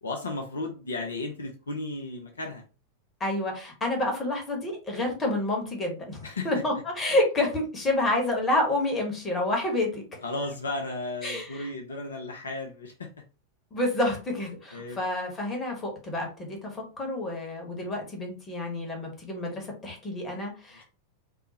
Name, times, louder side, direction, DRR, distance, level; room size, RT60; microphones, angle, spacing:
voice 1, 0.0-2.6 6.2-6.5 10.2-13.1 14.7-15.0 20.7-20.8, left 2 dB, 70° left, 3 dB, 0.5 m, -34 dB
voice 2, 3.2-10.0 11.2-11.7 13.7-20.8, left 1 dB, 20° left, 1 dB, 1.1 m, -29 dB
3.5 x 2.1 x 2.7 m, 0.34 s
figure-of-eight pair, 90°, 0 cm